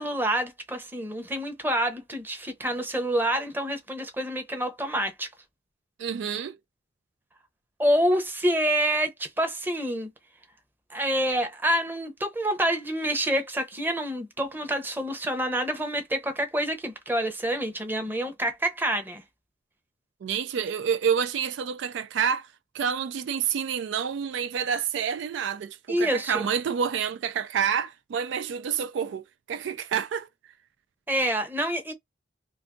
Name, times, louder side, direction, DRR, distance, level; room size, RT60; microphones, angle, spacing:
voice 1, 0.0-5.3 7.8-10.1 10.9-19.2 25.9-26.4 31.1-31.9, right 1 dB, 10° right, 0.8 m, -27 dB
voice 2, 6.0-6.6 20.2-22.5 22.7-30.3, right 7 dB, 75° right, 0.3 m, -28 dB
2.5 x 2.4 x 3.7 m
head